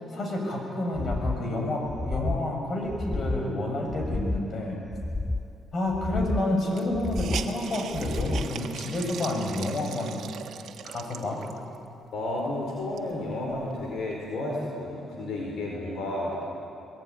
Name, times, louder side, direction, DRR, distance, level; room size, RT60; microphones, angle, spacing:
voice 1, 0.1-4.8 5.7-10.2 10.8-11.4, left 1 dB, 50° left, 1 dB, 6.9 m, -29 dB
sound 1, 0.9-1.4 1.8-2.4 2.9-3.5 3.9-4.5 4.9-5.5 5.9-6.5 6.9-7.5 7.9-8.5, left 2 dB, 15° left, 0.7 m, -31 dB
Hiss, 5.9-6.0 6.2-6.3 6.7-11.8 12.3-12.4 12.8-14.2, right 8 dB, 70° right, 1.5 m, -40 dB
voice 2, 12.1-16.4, left 2 dB, 75° left, -1 dB, 4.7 m, -32 dB
23.0 x 20.5 x 9.6 m, 2.7 s
cardioid pair, 90°, 0 cm